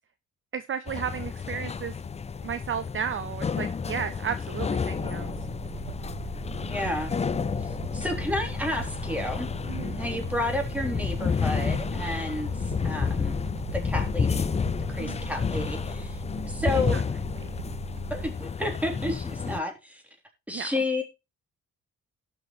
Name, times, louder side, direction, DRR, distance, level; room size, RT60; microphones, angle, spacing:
voice 1, 0.5-2.0 2.4-5.3 9.7-10.0 15.0-15.2 16.9-17.0 20.5-20.7, right 7 dB, 40° right, 12 dB, 0.7 m, -33 dB
sound 1, 0.9-19.6, left 6 dB, 20° left, 0.5 m, -31 dB
sound 2, 4.9-18.3, right 8 dB, 85° right, 1.5 m, -40 dB
voice 2, 6.7-7.1 7.9-9.5 9.9-13.3 13.7-14.4 14.9-17.0 18.1-20.0 20.5-21.0, left 1 dB, 5° right, 2 dB, 3.4 m, -31 dB
17.5 x 6.1 x 3.1 m, 0.28 s
cardioid pair, 90°, 30 cm